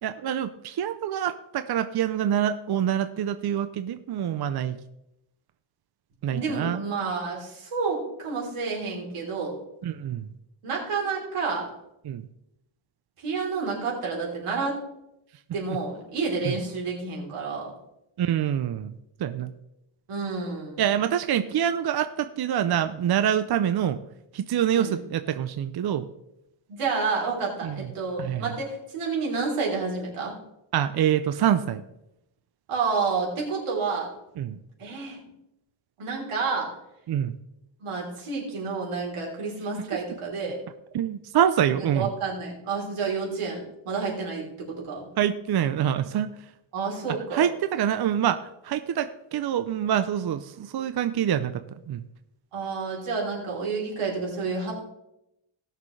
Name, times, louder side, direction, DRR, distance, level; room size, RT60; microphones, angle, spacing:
voice 1, 0.0-4.8 6.2-6.8 9.8-10.3 12.0-12.2 16.4-16.6 18.2-19.5 20.8-24.0 24.3-26.1 27.6-27.9 28.2-28.5 30.7-31.8 34.4-34.6 37.1-37.4 40.9-42.1 45.2-46.3 47.3-52.0, right 10 dB, 50° right, 11 dB, 0.6 m, -26 dB
voice 2, 6.3-9.5 10.6-11.7 13.2-14.8 15.5-17.7 20.1-20.8 24.7-25.0 26.7-30.3 32.7-34.1 34.8-35.2 36.0-36.7 37.8-40.6 41.7-45.0 46.7-47.5 52.5-54.7, right 4 dB, 90° right, -2 dB, 3.6 m, -29 dB
18.0 x 6.6 x 3.2 m, 0.85 s
wide cardioid pair, 135°, 49 cm